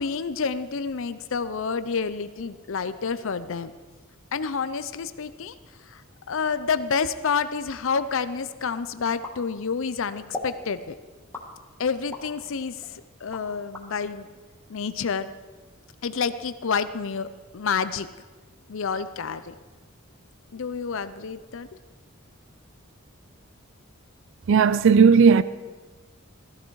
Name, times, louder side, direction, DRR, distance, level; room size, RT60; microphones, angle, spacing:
voice 1, 0.0-3.7 4.3-5.5 5.8-6.0 6.3-11.0 11.8-14.3 14.7-15.3 16.0-17.3 17.5-18.1 18.7-19.5 20.5-21.7, left 5 dB, 65° left, 0.6 m, -29 dB
sound 1, 9.2-9.9 10.3-10.6 11.3-12.3 12.8-13.9, left 2 dB, 10° left, 1.8 m, -37 dB
voice 2, 24.5-25.4, right 5 dB, 60° right, 0.4 m, -15 dB
16.5 x 14.0 x 4.7 m
head